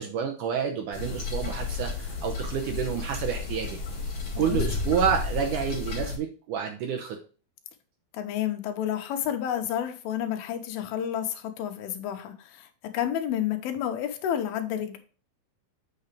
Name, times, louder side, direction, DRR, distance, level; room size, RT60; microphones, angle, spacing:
voice 1, 0.0-3.8 4.4-7.2, right 7 dB, 75° right, 3 dB, 1.9 m, -29 dB
sound 1, 0.9-6.2, left 4 dB, 40° left, 2.2 m, -32 dB
voice 2, 4.4-4.7 8.1-12.7 12.9-15.0, left 10 dB, 80° left, 5 dB, 2.7 m, -30 dB
7.8 x 5.7 x 3.3 m, 0.38 s
omnidirectional pair, 4.5 m